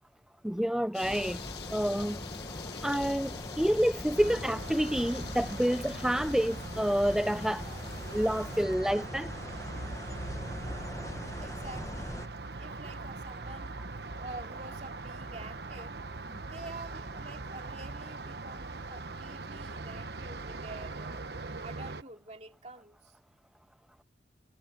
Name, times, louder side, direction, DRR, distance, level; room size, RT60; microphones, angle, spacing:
voice 1, 0.4-1.4 1.7-2.2 2.8-7.8 8.1-9.3, equal, 5° right, 0.4 m, -28 dB
sound 1, 0.9-8.7, left 6 dB, 65° left, 1.7 m, -46 dB
sound 2, 1.0-12.3, left 1 dB, 15° left, 1.0 m, -42 dB
sound 3, 4.2-22.0, right 3 dB, 65° right, 1.1 m, -41 dB
voice 2, 10.6-12.1 12.6-13.8 14.2-16.0 16.4-21.3 21.6-23.1, right 2 dB, 35° right, 2.6 m, -48 dB
head